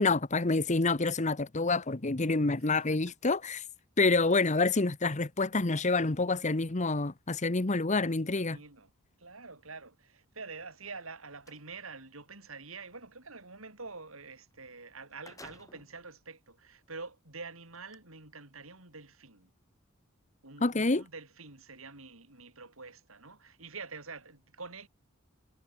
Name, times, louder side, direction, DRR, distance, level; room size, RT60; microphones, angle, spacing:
voice 1, 0.0-3.6 4.0-8.6 20.6-21.0, left 3 dB, 35° left, 1.1 m, -27 dB
voice 2, 8.3-8.9 9.2-19.5 20.4-24.9, right 4 dB, 80° right, 6.1 m, -47 dB
sound 1, 10.7-11.7 14.5-14.6 14.9-16.0 16.7-16.8 17.7-18.0, left 2 dB, 15° left, 5.2 m, -55 dB
head